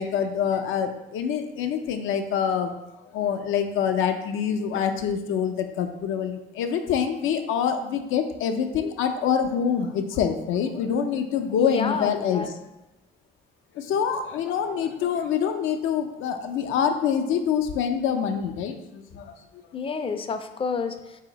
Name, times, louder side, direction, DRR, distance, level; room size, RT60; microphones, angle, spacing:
voice 1, 0.0-2.7 3.1-12.5 13.7-19.3, left 7 dB, 85° left, 7 dB, 0.5 m, -25 dB
voice 2, 11.5-12.5 19.7-21.2, left 5 dB, 30° left, 8 dB, 0.4 m, -30 dB
4.1 x 2.8 x 3.9 m, 0.99 s
cardioid pair, 90°, 20 cm